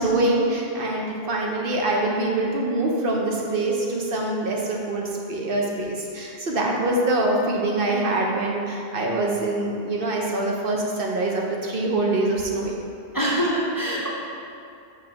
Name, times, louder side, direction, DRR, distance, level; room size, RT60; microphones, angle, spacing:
voice 1, 0.0-12.7, right 2 dB, 55° right, -1 dB, 0.9 m, -24 dB
voice 2, 13.1-14.1, equal, 25° left, -5 dB, 0.6 m, -24 dB
6.2 x 3.2 x 5.7 m, 2.6 s
omnidirectional pair, 1.1 m